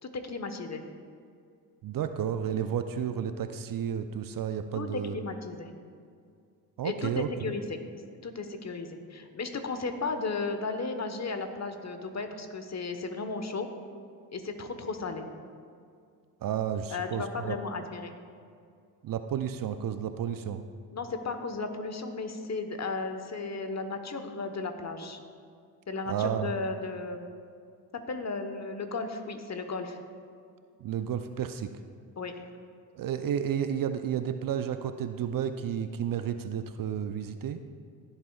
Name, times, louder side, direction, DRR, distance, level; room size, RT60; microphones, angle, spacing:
voice 1, 0.0-0.8 4.7-5.7 6.8-7.8 8.2-13.7 14.3-15.3 16.9-18.1 20.9-25.2 25.9-27.3 28.1-30.0 32.2-32.3, left 3 dB, 35° left, 7 dB, 1.2 m, -35 dB
voice 2, 1.8-5.2 6.8-7.5 16.4-17.6 19.0-20.6 26.1-26.5 30.8-31.7 32.9-37.6, right 9 dB, 45° right, 9 dB, 0.6 m, -32 dB
16.0 x 8.0 x 2.4 m, 2.3 s
hypercardioid pair, 45°, 46 cm